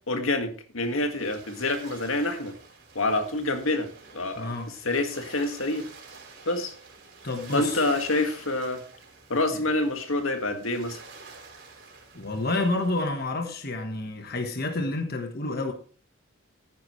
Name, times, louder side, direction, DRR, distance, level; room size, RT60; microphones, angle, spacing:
voice 1, 0.1-2.5 3.0-5.9 6.5-6.7 7.5-8.8 9.3-11.0, left 2 dB, 80° left, 2.0 m, -27 dB
sound 1, 0.8-13.0, right 4 dB, 55° right, 4.2 m, -48 dB
voice 2, 4.4-4.7 7.2-7.8 9.5-9.6 12.1-15.7, left 2 dB, 45° left, 1.4 m, -29 dB
14.0 x 10.5 x 3.2 m
head